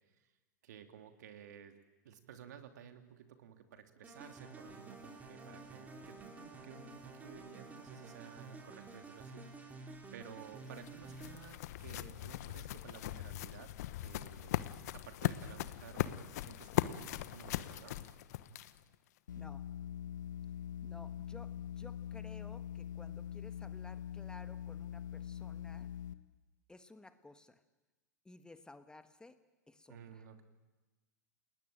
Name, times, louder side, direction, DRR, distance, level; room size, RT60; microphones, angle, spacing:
voice 1, 0.6-1.8 2.0-18.2 18.5-18.6 29.9-30.4, right 8 dB, 65° right, 6 dB, 2.9 m, -54 dB
sound 1, 4.0-11.7, right 3 dB, 15° right, 4.6 m, -51 dB
sound 2, 10.4-18.9, left 14 dB, 60° left, 1.1 m, -39 dB
sound 3, 19.3-26.1, left 9 dB, 75° left, 1.5 m, -44 dB
voice 2, 20.8-25.9 26.7-27.6 28.2-29.4 29.7-30.3, left 2 dB, 10° left, 10 dB, 1.4 m, -56 dB
29.5 x 20.0 x 9.1 m, 1.2 s
hypercardioid pair, 100°, 10 cm